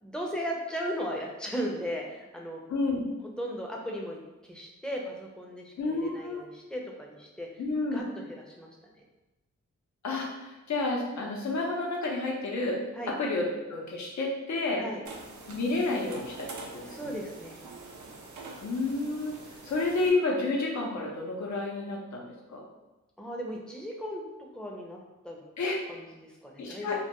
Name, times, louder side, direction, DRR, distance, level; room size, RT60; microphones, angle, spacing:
voice 1, 0.0-2.6 3.2-7.5 7.9-8.9 12.9-13.1 14.8-15.0 16.9-17.6 23.2-24.2 24.5-25.0 25.2-25.4 25.9-27.0, equal, 5° left, -1 dB, 0.5 m, -37 dB
voice 2, 2.7-3.0 5.8-6.4 7.6-8.0 10.0-12.8 13.2-14.8 15.5-16.5 16.7-17.1 18.6-19.4 19.6-22.6 25.6-25.8 26.6-27.0, left 3 dB, 70° left, -1 dB, 0.6 m, -30 dB
sound 1, 15.0-20.1, right 3 dB, 80° right, 0.5 m, -45 dB
2.2 x 2.2 x 2.8 m, 1.1 s
cardioid pair, 60°, 29 cm